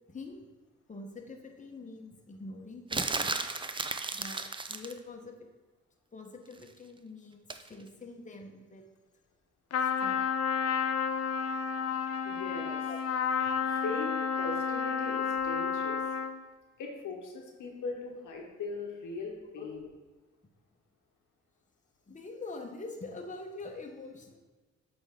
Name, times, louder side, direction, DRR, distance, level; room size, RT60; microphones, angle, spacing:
voice 1, 0.1-0.5 0.9-3.4 4.1-5.3 6.1-8.9 9.8-10.2 12.8-13.0 13.5-13.7 19.6-19.7 20.4-20.5 22.1-24.4, left 3 dB, 25° left, 2 dB, 0.9 m, -45 dB
sound 1, 2.9-5.0 7.5-7.7, right 3 dB, 15° right, 0.4 m, -34 dB
Trumpet, 9.7-16.4, left 6 dB, 55° left, 0.5 m, -31 dB
voice 2, 12.2-12.8 13.7-14.1 14.4-16.0 16.8-19.9, left 4 dB, 85° left, 1 dB, 1.0 m, -39 dB
8.0 x 3.5 x 3.5 m, 1.3 s
cardioid pair, 60°, 30 cm